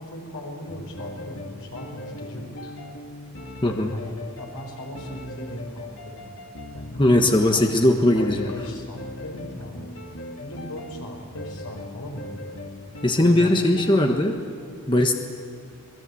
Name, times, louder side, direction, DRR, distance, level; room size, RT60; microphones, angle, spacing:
voice 1, 0.0-2.8 3.9-6.4 6.7-9.9 10.4-12.5 13.2-13.8, equal, 85° left, 1 dB, 5.5 m, -38 dB
sound 1, 0.7-14.2, left 1 dB, 65° left, 2.7 m, -39 dB
voice 2, 3.6-3.9 7.0-8.5 13.0-14.4 14.9-15.1, left 1 dB, 20° left, 3 dB, 1.3 m, -19 dB
27.0 x 20.5 x 8.5 m, 2.2 s
head